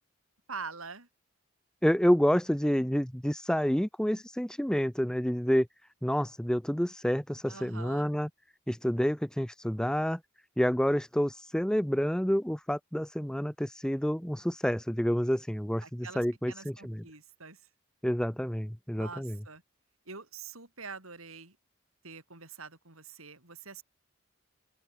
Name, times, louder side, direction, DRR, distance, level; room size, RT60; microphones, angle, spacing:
voice 1, 0.5-1.1 7.5-8.1 15.8-17.6 19.0-19.6 20.1-21.6 22.0-23.8, right 5 dB, 80° right, 7.1 m, -45 dB
voice 2, 1.8-5.7 6.0-8.3 8.7-10.2 10.6-17.0 18.0-19.4, equal, 5° left, 0.7 m, -28 dB
open air
head